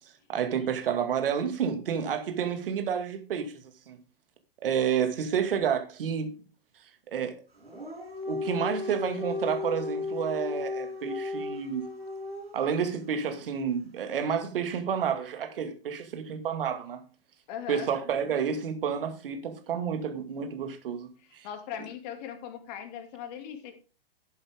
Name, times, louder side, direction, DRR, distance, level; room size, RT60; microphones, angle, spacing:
voice 1, 0.3-3.5 3.9-4.0 4.6-6.3 7.1-7.4 8.3-11.9 12.5-17.0 17.7-21.5, right 7 dB, 65° right, 2.2 m, -30 dB
Dog, 7.6-12.7, left 3 dB, 90° right, 6.2 m, -35 dB
voice 2, 17.5-17.9 21.4-23.7, left 9 dB, 45° left, 2.4 m, -39 dB
12.0 x 8.0 x 3.6 m
figure-of-eight pair, 110°, 30 cm